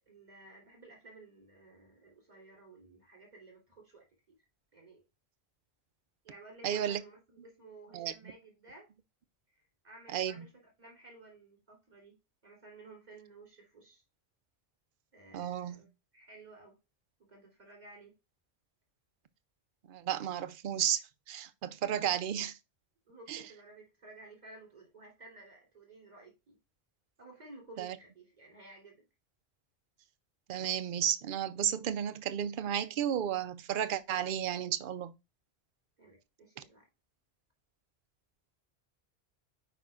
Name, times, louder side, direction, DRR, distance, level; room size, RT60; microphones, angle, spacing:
voice 1, 0.1-4.4 4.7-5.0 6.2-8.9 9.5-12.2 12.4-14.0 15.1-15.9 16.1-16.8 17.2-18.1 23.1-26.6 27.2-29.0 36.0-36.9, right 2 dB, 40° right, 3.4 m, -54 dB
voice 2, 6.6-7.0 7.9-8.1 10.1-10.4 15.3-15.9 19.9-21.0 21.3-22.6 23.3-23.4 27.8-28.0 30.5-35.1, right 10 dB, 60° right, 0.7 m, -33 dB
8.9 x 5.1 x 2.4 m
omnidirectional pair, 1.1 m